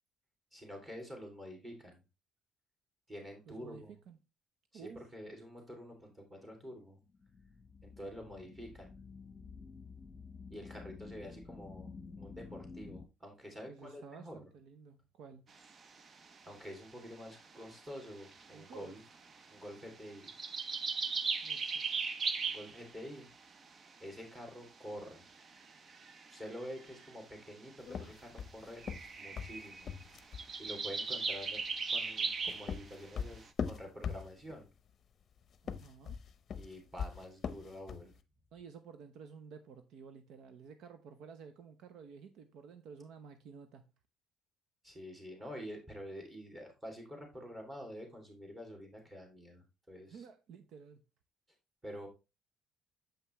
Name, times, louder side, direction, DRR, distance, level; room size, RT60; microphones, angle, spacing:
voice 1, 0.5-2.0 3.1-3.9 4.7-7.0 7.8-8.9 10.5-11.9 12.2-14.4 16.4-19.0 19.5-20.3 22.5-23.3 24.0-25.3 26.3-28.8 29.2-29.9 30.6-34.7 36.5-38.1 44.8-50.2 51.8-52.1, equal, 15° right, 2.6 m, -48 dB
voice 2, 3.5-4.2 4.7-5.0 13.7-15.5 18.5-19.0 21.4-21.8 35.6-36.2 38.5-43.9 50.1-51.0, right 6 dB, 70° right, 0.8 m, -52 dB
sound 1, 6.4-13.1, left 4 dB, 20° left, 1.1 m, -51 dB
sound 2, 15.6-16.3 16.7-16.8 17.0-18.7 19.0-19.7 20.0-23.4 25.3-27.2 28.0-28.1 28.3-28.4 28.7-33.5, right 4 dB, 35° right, 0.6 m, -38 dB
sound 3, 27.9-30.5 32.2-34.6 35.5-38.1, left 7 dB, 45° left, 0.7 m, -40 dB
7.2 x 5.7 x 3.1 m
cardioid pair, 130°, 0 cm